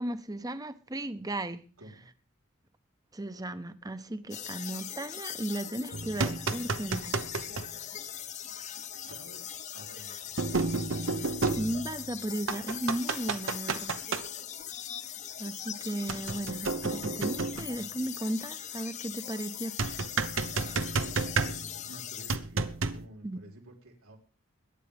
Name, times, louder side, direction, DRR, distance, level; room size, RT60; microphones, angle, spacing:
voice 1, 0.0-1.6 3.1-7.2 7.4-7.9 11.2-14.0 15.4-19.8 20.5-20.7 23.2-23.4, right 1 dB, 15° right, 0.9 m, -36 dB
voice 2, 1.8-2.1 8.9-9.5 9.7-10.9 21.8-24.2, right 1 dB, 85° right, 4.3 m, -51 dB
sound 1, 4.3-22.4, left 10 dB, 35° left, 0.7 m, -41 dB
sound 2, 5.9-7.7 9.1-9.2 10.4-12.1 12.5-14.2 16.1-17.8 19.8-21.9 22.3-23.1, right 4 dB, 65° right, 1.0 m, -31 dB
22.5 x 11.0 x 3.4 m
head